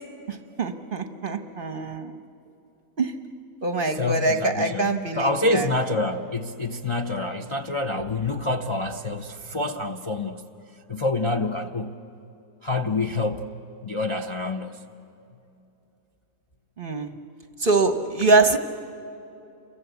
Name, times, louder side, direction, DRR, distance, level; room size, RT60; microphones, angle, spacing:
voice 1, 0.3-2.1 3.0-3.1 3.6-5.7 16.8-17.1 17.6-18.6, right 3 dB, 40° right, 8 dB, 0.9 m, -24 dB
voice 2, 3.9-10.5 10.9-11.9 12.6-13.5 13.8-14.8, left 2 dB, 35° left, 2 dB, 0.4 m, -27 dB
29.0 x 22.5 x 8.2 m, 2.8 s
omnidirectional pair, 1.8 m